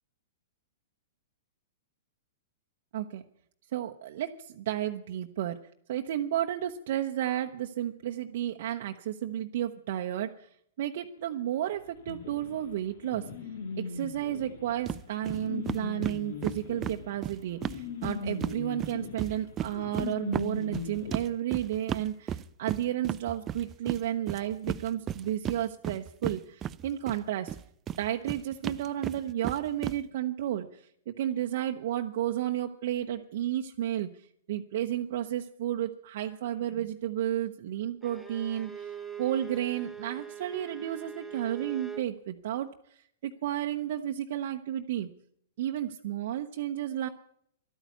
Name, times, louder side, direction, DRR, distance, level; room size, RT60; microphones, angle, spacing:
voice 1, 3.7-5.6 5.9-10.5 10.8-13.3 13.8-27.5 28.0-34.1 34.5-38.9 39.2-45.1 45.6-47.1, right 12 dB, 60° right, 3 dB, 0.8 m, -32 dB
sound 1, 12.1-21.2, left 5 dB, 70° left, 1.9 m, -39 dB
sound 2, 14.9-15.0 15.3-15.4 15.7-18.6 18.8-27.2 27.5-30.0, right 9 dB, 25° right, 0.4 m, -34 dB
Bowed string instrument, 38.0-42.1, right 7 dB, 5° right, 1.0 m, -42 dB
12.0 x 9.2 x 9.4 m, 0.68 s
hypercardioid pair, 130°, 0 cm